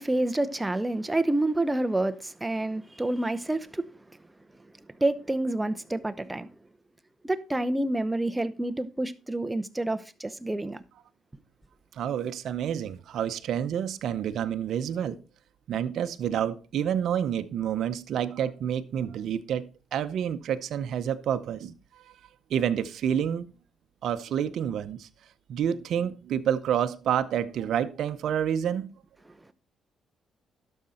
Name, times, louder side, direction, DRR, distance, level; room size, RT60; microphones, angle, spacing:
voice 1, 0.0-3.9 5.0-6.5 7.2-10.8, right 1 dB, 10° right, 0.8 m, -28 dB
voice 2, 11.9-15.2 15.7-22.1 22.5-23.5 24.0-25.1 25.5-28.9, right 9 dB, 70° right, 0.7 m, -29 dB
12.0 x 6.5 x 4.3 m
cardioid pair, 90°, 0 cm